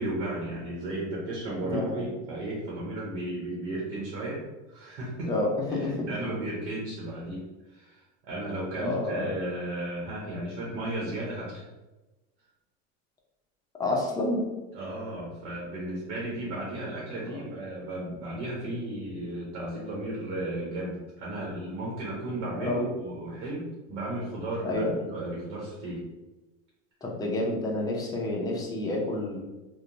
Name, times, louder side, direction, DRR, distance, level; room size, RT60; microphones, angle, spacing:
voice 1, 0.0-4.4 4.7-5.3 5.7-7.4 7.7-11.6 14.7-26.0, right 1 dB, 80° right, -5 dB, 0.9 m, -34 dB
voice 2, 5.2-6.3 8.8-9.3 13.8-14.4 22.5-22.9 24.6-24.9 27.0-29.4, left 2 dB, 10° left, -2 dB, 0.5 m, -29 dB
2.8 x 2.2 x 2.5 m, 1.1 s
supercardioid pair, 115°, 34 cm